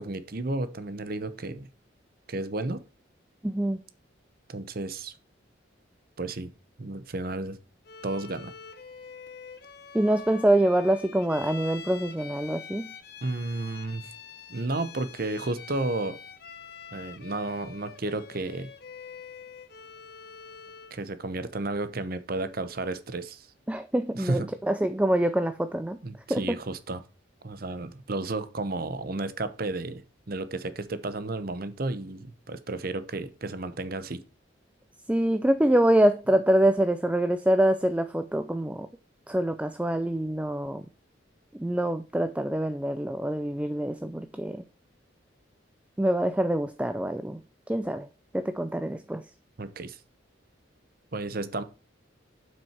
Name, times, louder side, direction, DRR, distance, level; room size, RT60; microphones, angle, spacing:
voice 1, 0.0-1.7 2.3-2.8 4.5-5.1 6.2-6.5 6.8-7.6 8.0-8.5 13.2-14.0 14.5-16.2 16.9-18.7 20.9-23.5 24.1-24.5 26.0-27.0 27.4-34.2 49.6-50.0 51.1-51.6, right 2 dB, 50° right, 0.8 m, -32 dB
voice 2, 3.4-3.8 9.9-12.9 23.7-26.0 26.3-26.6 35.1-38.9 39.3-40.8 41.6-44.6 46.0-47.4 47.7-48.1 48.3-49.2, right 1 dB, 5° right, 0.4 m, -25 dB
Bowed string instrument, 7.8-21.0, left 6 dB, 55° left, 1.0 m, -45 dB
7.6 x 6.2 x 4.4 m
head